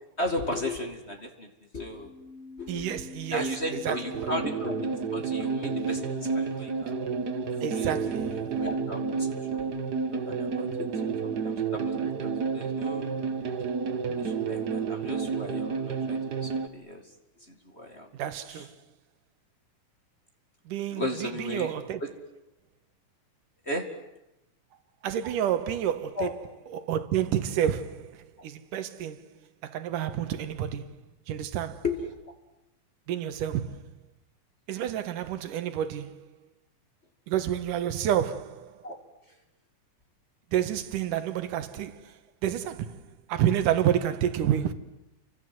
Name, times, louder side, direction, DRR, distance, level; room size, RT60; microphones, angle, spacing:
voice 1, 0.2-1.5 1.7-2.1 2.6-2.9 3.3-6.1 6.3-7.1 7.7-7.9 8.4-9.7 10.1-13.1 14.2-17.0 17.5-18.1 18.5-18.6 20.9-21.7 22.0-22.1 23.7-23.9 26.2-26.3 31.8-32.1 38.8-39.0, left 1 dB, 25° left, 2.1 m, -35 dB
sound 1, 1.9-11.5, left 3 dB, 60° left, 3.3 m, -43 dB
voice 2, 2.7-4.3 7.6-8.5 18.1-18.8 20.7-22.0 25.0-26.4 26.7-29.3 29.6-31.8 33.1-33.9 34.7-36.3 37.3-38.9 40.5-44.7, right 10 dB, 85° right, 2.8 m, -30 dB
Post-punk, 4.1-16.7, right 5 dB, 50° right, 1.2 m, -30 dB
29.5 x 25.5 x 7.8 m
omnidirectional pair, 3.6 m